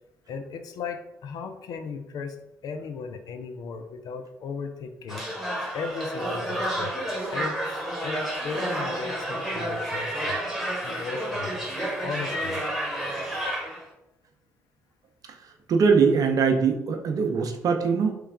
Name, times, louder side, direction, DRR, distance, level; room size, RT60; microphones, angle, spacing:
voice 1, 0.3-5.2 5.7-6.9 7.3-10.4 10.8-11.7 12.0-12.6, left 5 dB, 55° left, 7 dB, 0.4 m, -36 dB
sound 1, 5.1-13.9, right 1 dB, ahead, 1.3 m, -30 dB
voice 2, 15.3-18.1, right 5 dB, 50° right, 5 dB, 0.6 m, -22 dB
3.3 x 3.1 x 3.5 m, 0.87 s
figure-of-eight pair, 45°, 8 cm